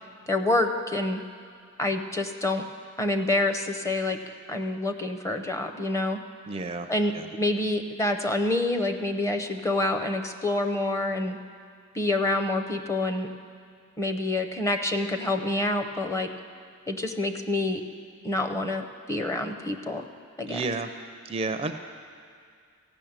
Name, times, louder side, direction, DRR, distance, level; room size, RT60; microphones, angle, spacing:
voice 1, 0.3-1.2 1.8-2.6 3.0-4.2 4.5-6.2 6.9-11.4 11.9-13.3 14.0-16.3 16.9-17.8 18.2-20.1 20.4-20.6, left 2 dB, 15° left, 6 dB, 0.6 m, -27 dB
voice 2, 6.5-7.3 20.5-20.9 21.2-21.7, right 3 dB, 25° right, 7 dB, 0.4 m, -31 dB
15.0 x 6.3 x 8.8 m, 2.2 s
head